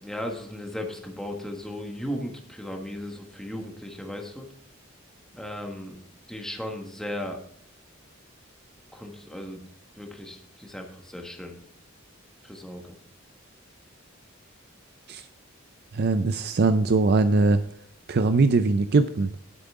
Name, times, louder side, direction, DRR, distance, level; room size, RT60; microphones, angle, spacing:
voice 1, 0.0-4.4 5.3-6.0 6.3-7.4 8.9-9.6 9.9-11.5 12.4-13.0, left 1 dB, 5° left, 2 dB, 1.4 m, -36 dB
voice 2, 15.9-17.6 18.1-19.3, right 3 dB, 50° right, 10 dB, 0.4 m, -21 dB
10.5 x 7.7 x 3.6 m, 0.65 s
head